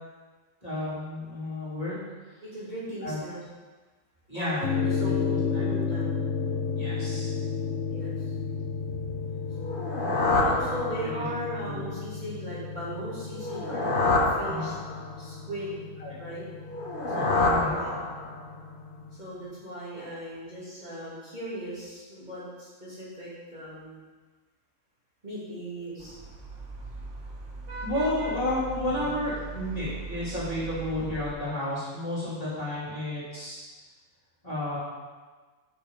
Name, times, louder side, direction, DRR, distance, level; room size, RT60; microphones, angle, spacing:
voice 1, 0.6-2.0 3.0-3.2 4.3-4.6 5.0-5.2 5.5-5.6 6.8-7.3 11.0-11.3 11.6-11.8 14.4-14.7 16.0-16.2 17.4-17.7 27.8-33.6 34.4-34.8, left 1 dB, 25° left, -10 dB, 3.1 m, -31 dB
voice 2, 2.4-3.4 4.3-6.2 7.9-8.1 10.3-14.8 15.2-15.8 16.2-16.5 17.1-17.9 19.2-23.9 25.2-26.1, equal, 30° right, -10 dB, 3.1 m, -37 dB
sound 1, 4.6-19.2, left 5 dB, 65° left, 1.0 m, -33 dB
sound 2, 9.6-11.4 13.3-15.2 16.7-18.5, left 2 dB, 40° left, 1.2 m, -27 dB
Vehicle horn car horn honking / Traffic noise roadway noise, 26.0-31.3, right 3 dB, 60° right, 1.5 m, -39 dB
12.0 x 6.4 x 3.9 m, 1.3 s
omnidirectional pair, 1.4 m